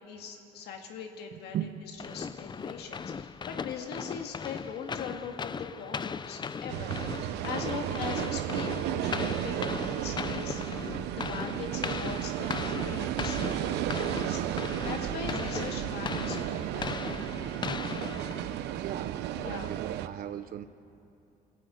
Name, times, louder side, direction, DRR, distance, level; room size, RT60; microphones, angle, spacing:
voice 1, 0.1-14.4 14.8-17.7 17.9-18.2 19.4-19.8, left 6 dB, 75° left, 2 dB, 2.0 m, -41 dB
voice 2, 1.3-1.8 18.8-19.2 19.4-20.6, right 11 dB, 60° right, 12 dB, 0.8 m, -37 dB
sound 1, 2.0-18.8, left 6 dB, 25° left, 0.5 m, -38 dB
sound 2, 6.7-20.1, right 12 dB, 90° right, 0.9 m, -33 dB
23.5 x 14.5 x 9.1 m, 2.7 s
cardioid pair, 110°, 17 cm